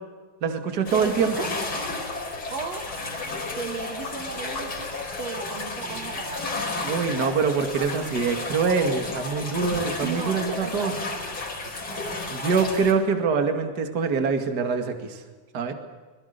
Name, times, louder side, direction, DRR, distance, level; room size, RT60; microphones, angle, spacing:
voice 1, 0.4-1.5 6.8-10.9 12.3-15.2 15.5-15.7, right 5 dB, 35° right, 6 dB, 2.5 m, -24 dB
sound 1, 0.7-12.6, left 2 dB, 75° left, 7.5 m, -45 dB
sound 2, 0.9-12.9, left 3 dB, 45° left, 5.1 m, -33 dB
voice 2, 0.9-1.5 2.5-2.9 3.6-4.9 5.2-6.5 10.0-12.2, right 5 dB, 65° right, 6 dB, 2.8 m, -36 dB
25.5 x 21.5 x 6.9 m, 1.4 s
omnidirectional pair, 3.3 m